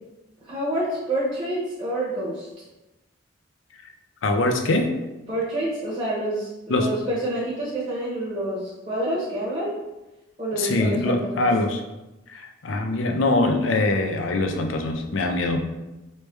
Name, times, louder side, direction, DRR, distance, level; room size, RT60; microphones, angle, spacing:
voice 1, 0.5-2.5 5.3-9.8 10.4-11.5, right 1 dB, 35° right, -8 dB, 0.9 m, -28 dB
voice 2, 4.2-5.0 6.7-6.9 10.5-11.8 12.3-15.6, left 2 dB, 85° left, 4 dB, 0.5 m, -23 dB
3.2 x 3.1 x 3.3 m, 1.0 s
head